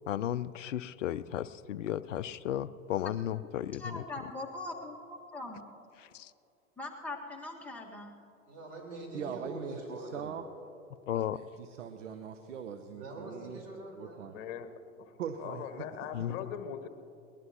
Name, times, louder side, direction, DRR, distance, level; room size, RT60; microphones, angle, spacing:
voice 1, 0.1-4.0 6.0-6.3 11.1-11.4 16.1-16.5, left 11 dB, 60° left, 14 dB, 0.6 m, -34 dB
voice 2, 3.7-5.6 6.8-8.2, left 2 dB, 5° left, -2 dB, 1.8 m, -41 dB
voice 3, 8.5-10.3 12.9-14.3, right 1 dB, 40° right, -2 dB, 4.6 m, -44 dB
voice 4, 9.1-10.4 11.3-13.6 14.0-14.3 15.2-15.9, right 7 dB, 60° right, 8 dB, 0.9 m, -41 dB
voice 5, 14.3-14.7 15.0-15.1 15.4-16.9, left 8 dB, 45° left, 9 dB, 1.3 m, -40 dB
21.5 x 19.5 x 3.0 m, 2.8 s
figure-of-eight pair, 95°, 41 cm